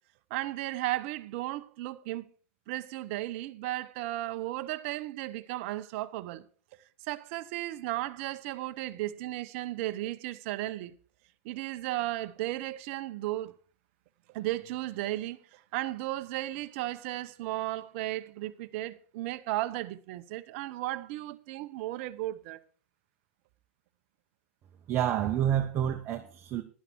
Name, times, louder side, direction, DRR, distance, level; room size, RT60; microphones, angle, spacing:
voice 1, 0.3-2.3 2.7-6.4 7.1-10.9 11.4-13.6 14.3-22.6, right 16 dB, 60° right, 0.9 m, -35 dB
voice 2, 24.9-26.6, right 10 dB, 40° right, 1.2 m, -28 dB
11.5 x 11.0 x 4.5 m
hypercardioid pair, 100°, 7 cm